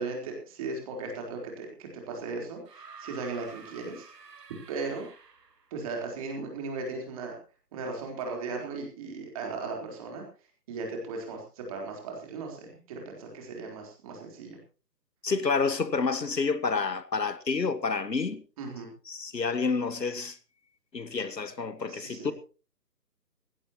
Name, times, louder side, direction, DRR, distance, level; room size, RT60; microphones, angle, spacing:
voice 1, 0.0-4.1 4.7-5.1 5.7-7.3 7.7-10.2 10.7-14.6 18.6-18.9 21.9-22.3, right 3 dB, 20° right, 3.9 m, -37 dB
sound 1, 2.7-5.7 7.0-7.1, right 4 dB, 75° right, 2.3 m, -49 dB
voice 2, 15.2-18.4 19.1-20.4 20.9-22.3, left 4 dB, 85° left, 1.8 m, -29 dB
19.5 x 16.5 x 3.0 m
figure-of-eight pair, 160°, 49 cm